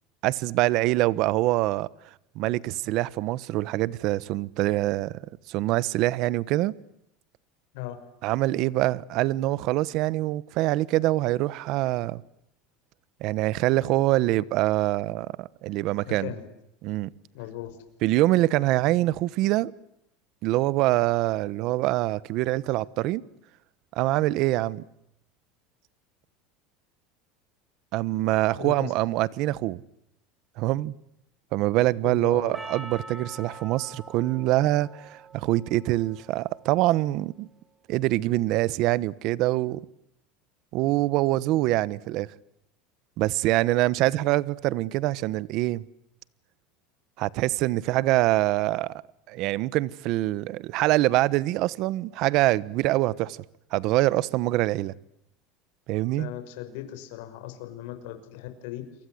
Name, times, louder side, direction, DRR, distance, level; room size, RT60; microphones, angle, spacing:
voice 1, 0.2-1.9 2.3-5.2 5.5-6.7 8.2-12.2 13.2-16.3 16.8-17.1 18.0-19.7 20.4-23.2 23.9-24.8 27.9-29.8 30.6-30.9 31.5-37.5 37.9-39.8 40.7-42.3 43.2-45.8 47.2-49.0 49.3-53.4 53.7-54.9 55.9-56.3, right 17 dB, 50° right, 1.1 m, -24 dB
voice 2, 16.1-16.4 17.3-17.8 28.6-28.9 32.0-32.6 56.1-58.8, left 13 dB, 75° left, 5.8 m, -37 dB
Percussion, 32.5-37.0, right 2 dB, 5° right, 3.1 m, -45 dB
30.0 x 24.0 x 8.0 m
supercardioid pair, 145°, 0 cm